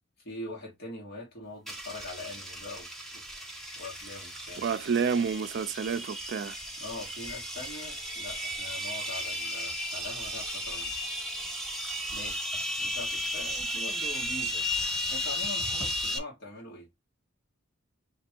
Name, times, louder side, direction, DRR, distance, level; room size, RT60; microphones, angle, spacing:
voice 1, 0.2-4.6 6.8-10.9 12.1-12.5 12.8-14.7 15.1-16.9, left 2 dB, 55° left, 1.7 m, -43 dB
sound 1, 1.7-16.2, left 1 dB, ahead, 0.7 m, -34 dB
voice 2, 4.6-6.6, right 6 dB, 55° right, 0.4 m, -29 dB
3.5 x 2.9 x 4.3 m
head